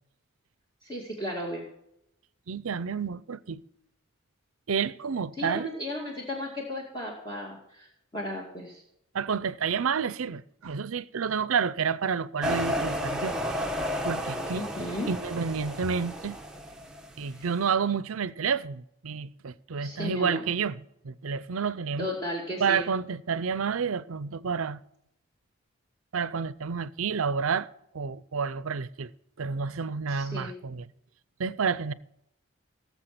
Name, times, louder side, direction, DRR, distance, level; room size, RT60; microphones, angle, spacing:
voice 1, 0.8-1.7 5.4-7.9 8.1-8.8 14.5-15.1 17.3-17.5 19.8-20.4 22.0-22.8 30.1-30.5, left 1 dB, 20° left, 2.2 m, -35 dB
voice 2, 2.5-3.6 4.7-5.7 9.1-13.3 14.0-14.6 15.1-16.4 17.2-22.1 22.6-24.8 26.1-27.7 27.9-29.1 29.4-30.8 31.4-31.9, right 6 dB, 80° right, 0.6 m, -29 dB
sound 1, 12.4-17.4, equal, 5° right, 1.0 m, -32 dB
18.5 x 7.2 x 6.0 m
head